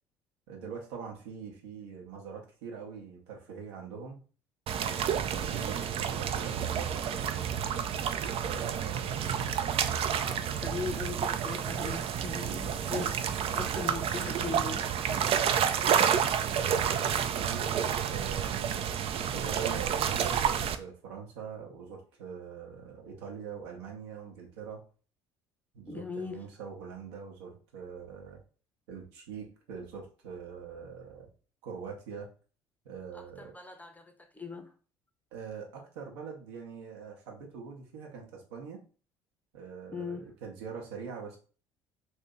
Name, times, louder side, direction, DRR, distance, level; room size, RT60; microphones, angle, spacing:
voice 1, 0.5-4.2 4.8-7.5 8.4-9.2 12.4-12.8 15.0-15.4 16.5-24.8 25.7-28.4 28.9-31.3 31.6-32.3 32.8-33.5 35.3-38.8 39.5-41.4, right 6 dB, 70° right, 0.9 m, -43 dB
sound 1, 4.7-20.7, right 8 dB, 40° right, 0.4 m, -30 dB
voice 2, 8.9-9.4 9.7-13.1 13.6-14.9 25.9-26.4 33.1-34.7 39.9-40.3, left 4 dB, 10° left, 0.7 m, -40 dB
2.8 x 2.7 x 3.6 m
figure-of-eight pair, 55°, 14 cm